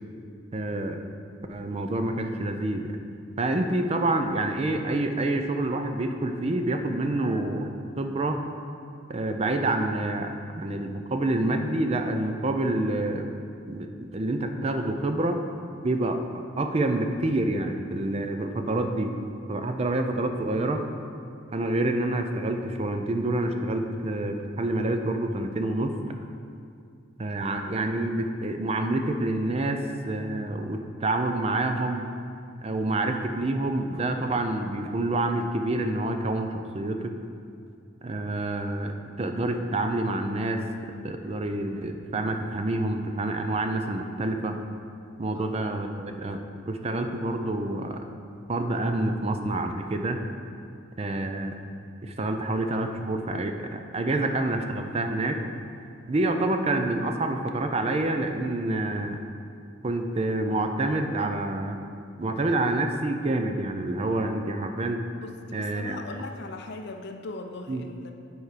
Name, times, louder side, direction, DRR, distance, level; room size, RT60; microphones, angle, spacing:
voice 1, 0.5-1.0 1.5-2.9 3.4-7.7 8.0-8.4 9.1-13.3 13.7-15.4 15.8-16.2 16.6-19.1 19.5-20.8 21.5-25.9 27.2-32.1 32.6-37.1 38.0-38.9 39.2-40.6 41.0-44.6 45.2-46.4 46.7-48.0 48.5-50.2 51.0-51.5 52.0-55.4 56.1-59.2 59.8-61.8 62.2-65.0 65.5-66.0 67.7-67.9, right 2 dB, 30° right, 5 dB, 0.4 m, -27 dB
voice 2, 65.2-68.1, left 3 dB, 55° left, 5 dB, 0.5 m, -39 dB
8.2 x 4.6 x 4.9 m, 2.4 s
head